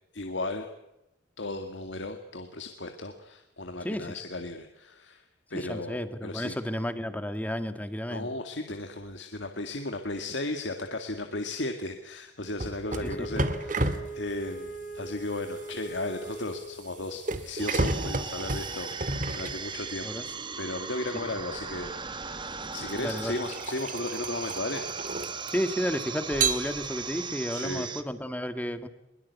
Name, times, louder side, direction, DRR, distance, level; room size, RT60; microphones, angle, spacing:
voice 1, 0.1-0.7 1.4-5.2 5.5-6.6 8.1-20.2 20.6-24.9 27.5-27.9, left 2 dB, 85° left, 6 dB, 2.1 m, -35 dB
voice 2, 3.8-4.2 5.5-8.3 13.0-13.5 20.0-20.3 21.2-21.3 23.0-23.3 25.5-28.9, equal, 10° left, 10 dB, 1.7 m, -32 dB
sound 1, 12.6-20.2 21.5-21.7 22.4-25.8 26.3-27.2, right 3 dB, 45° right, 2.0 m, -32 dB
Wind instrument woodwind instrument, 12.8-17.0, right 1 dB, 45° left, 3.9 m, -40 dB
sound 2, 17.6-28.0, right 5 dB, 25° right, 1.4 m, -38 dB
22.5 x 22.0 x 8.3 m, 0.89 s
head